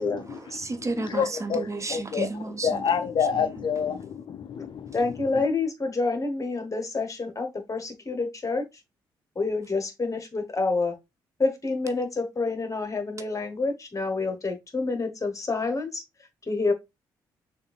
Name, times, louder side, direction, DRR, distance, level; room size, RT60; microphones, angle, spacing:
voice 1, 0.2-2.8 3.3-3.7, right 3 dB, 25° right, 0.7 m, -33 dB
voice 2, 1.1-1.6 1.9-2.3 2.6-5.0, left 7 dB, 45° left, 0.4 m, -27 dB
voice 3, 4.9-8.6 9.3-10.9 11.4-16.0 16.5-16.7, left 3 dB, 30° left, 1.1 m, -28 dB
6.5 x 2.4 x 2.4 m
hypercardioid pair, 45°, 11 cm